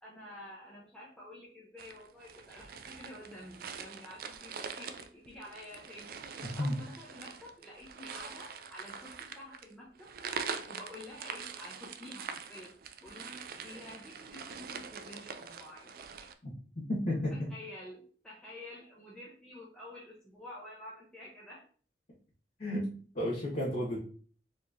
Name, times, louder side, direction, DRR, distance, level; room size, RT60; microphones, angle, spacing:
voice 1, 0.0-10.1 10.7-12.7 13.0-16.0 17.3-21.7, left 1 dB, 5° left, -6 dB, 0.7 m, -49 dB
sound 1, 1.8-16.3, right 6 dB, 55° right, 0.3 m, -44 dB
voice 2, 6.4-6.8 16.4-17.5 22.6-24.0, left 1 dB, 50° left, -7 dB, 1.4 m, -33 dB
4.3 x 2.9 x 2.6 m, 0.43 s
head